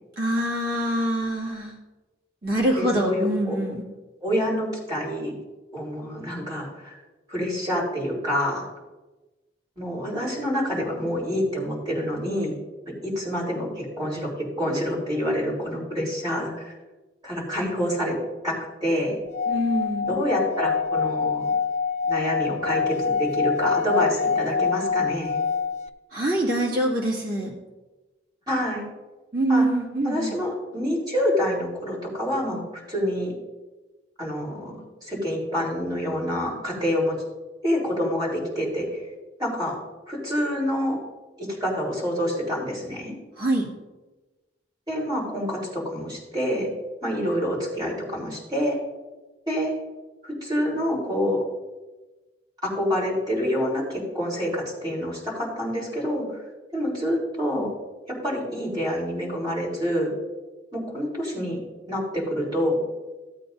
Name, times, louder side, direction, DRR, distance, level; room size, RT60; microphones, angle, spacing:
voice 1, 0.2-1.7 2.4-3.8 19.5-20.2 26.1-27.5 29.3-30.4 43.4-43.7, right 1 dB, 55° right, -3 dB, 2.1 m, -24 dB
voice 2, 2.8-3.6 4.2-5.3 5.7-6.9 7.3-8.6 9.8-12.5 13.0-14.3 14.6-16.7 17.2-18.2 18.4-19.2 20.1-21.4 22.1-25.4 28.5-28.8 29.5-29.7 30.0-32.6 32.9-33.3 34.2-37.1 37.6-39.0 39.4-39.8 40.1-41.0 41.4-43.1 44.9-46.7 47.0-48.8 49.5-49.7 50.2-51.4 52.6-56.2 56.7-57.7 58.1-60.1 60.7-61.6 61.9-62.8, equal, 20° right, -5 dB, 3.9 m, -27 dB
Singing / Glass, 19.3-25.9, left 5 dB, 35° left, 0.4 m, -25 dB
16.0 x 8.3 x 2.7 m, 1.2 s
head